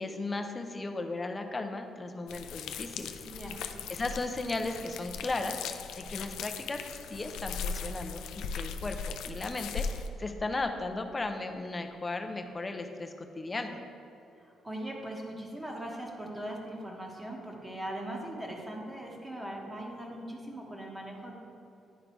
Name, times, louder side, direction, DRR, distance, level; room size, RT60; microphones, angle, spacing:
voice 1, 0.0-3.1 3.9-13.8, left 2 dB, 25° left, 5 dB, 0.7 m, -36 dB
sound 1, 2.3-10.1, left 6 dB, 85° left, 0.4 m, -38 dB
voice 2, 3.2-3.6 14.4-21.3, right 1 dB, 15° right, -1 dB, 1.3 m, -40 dB
10.0 x 3.9 x 4.6 m, 2.9 s
cardioid pair, 90°, 0 cm